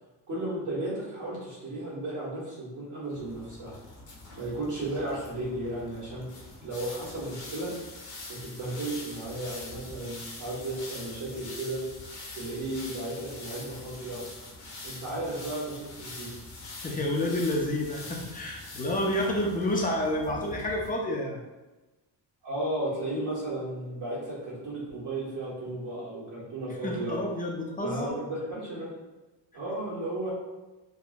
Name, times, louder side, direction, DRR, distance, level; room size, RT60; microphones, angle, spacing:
voice 1, 0.3-3.8 4.3-6.3 6.6-7.7 8.3-11.8 12.3-14.2 14.8-16.3 22.4-27.1 27.8-28.9 29.5-30.3, right 1 dB, 45° right, -7 dB, 1.3 m, -34 dB
sound 1, 3.1-20.9, left 2 dB, 75° left, 0.9 m, -44 dB
voice 2, 16.8-21.4 26.8-28.2, left 1 dB, 20° left, 0 dB, 0.4 m, -29 dB
3.5 x 2.0 x 2.4 m, 1.1 s
cardioid pair, 140°, 43 cm